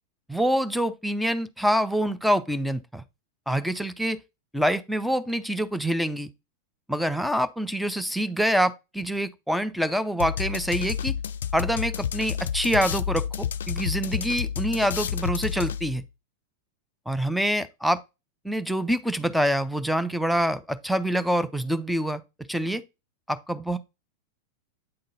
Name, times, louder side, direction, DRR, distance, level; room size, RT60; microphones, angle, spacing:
voice 1, 0.3-3.0 3.5-4.2 4.5-6.3 6.9-11.2 11.5-16.0 17.1-18.0 18.4-22.2 22.5-22.8 23.3-23.8, equal, ahead, 0.5 m, -26 dB
sound 1, 10.2-16.1, left 8 dB, 65° left, 0.4 m, -30 dB
8.7 x 3.9 x 3.9 m
figure-of-eight pair, 90°, 0 cm